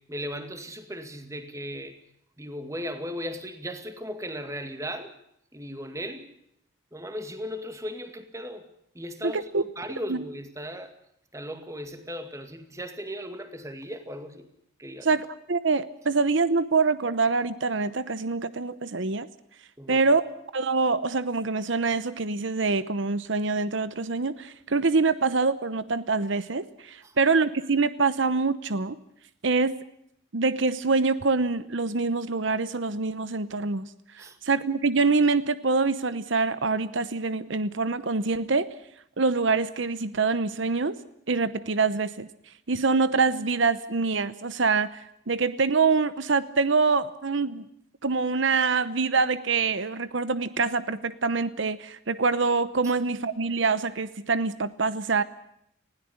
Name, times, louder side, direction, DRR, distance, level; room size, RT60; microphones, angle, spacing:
voice 1, 0.1-2.0 2.4-5.1 5.5-6.3 6.9-8.6 8.9-9.4 9.8-11.0 11.3-14.5 14.8-15.1 19.8-20.1 27.0-27.2 34.2-34.4 52.8-52.9, equal, 15° right, 8 dB, 2.1 m, -37 dB
voice 2, 9.2-9.6 10.1-10.2 15.0-19.3 19.9-20.2 20.5-29.0 29.4-29.7 30.3-33.9 34.1-38.7 39.2-41.0 41.3-42.3 42.7-47.7 48.0-55.2, right 4 dB, 70° right, 14 dB, 0.9 m, -25 dB
20.5 x 16.5 x 10.0 m, 0.74 s
head